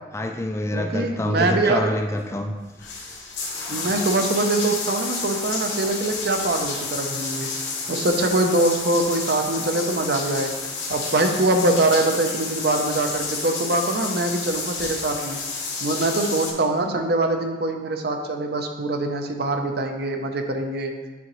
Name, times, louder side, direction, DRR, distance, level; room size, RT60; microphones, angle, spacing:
voice 1, 0.1-2.6 3.7-3.9, left 1 dB, 15° left, 4 dB, 0.3 m, -26 dB
voice 2, 0.7-1.9 3.7-7.5 7.9-10.5 10.9-15.4 15.8-20.9, right 2 dB, 60° right, 5 dB, 0.6 m, -23 dB
sound 1, 2.2-2.3 2.6-16.5, left 4 dB, 75° left, 1.2 m, -30 dB
9.3 x 3.8 x 3.1 m, 1.2 s
head